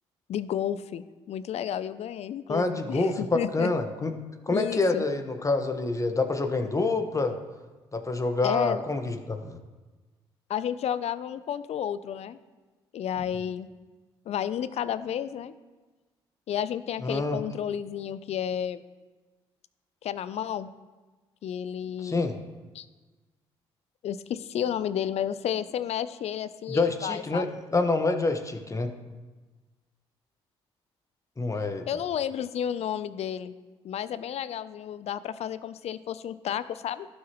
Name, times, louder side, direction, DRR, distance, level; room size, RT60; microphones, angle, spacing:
voice 1, 0.3-3.7 4.5-5.0 8.4-8.8 10.5-12.4 12.9-13.7 14.3-15.5 16.5-18.8 20.0-20.7 21.4-22.2 22.7-22.9 24.0-27.4 31.9-33.5 33.8-37.1, left 9 dB, 55° left, 15 dB, 0.5 m, -31 dB
voice 2, 2.5-4.1 4.5-7.4 7.9-9.6 17.0-17.4 22.0-22.3 26.7-28.9 31.4-31.9, left 3 dB, 25° left, 6 dB, 1.3 m, -27 dB
15.5 x 6.4 x 3.1 m, 1.3 s
hypercardioid pair, 50°, 13 cm